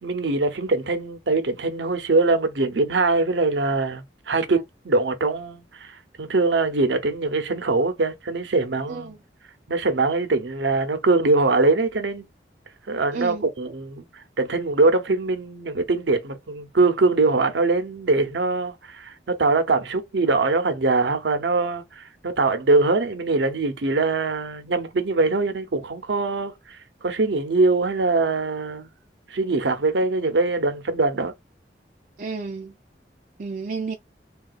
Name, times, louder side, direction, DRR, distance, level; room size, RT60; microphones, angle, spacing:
voice 1, 0.0-9.2 9.7-12.2 12.9-26.8 27.0-28.9 29.3-31.3, right 3 dB, 90° right, 0.7 m, -22 dB
voice 2, 13.1-13.4 32.2-32.7 33.4-33.9, right 4 dB, 45° right, 0.4 m, -31 dB
3.6 x 2.3 x 2.4 m
head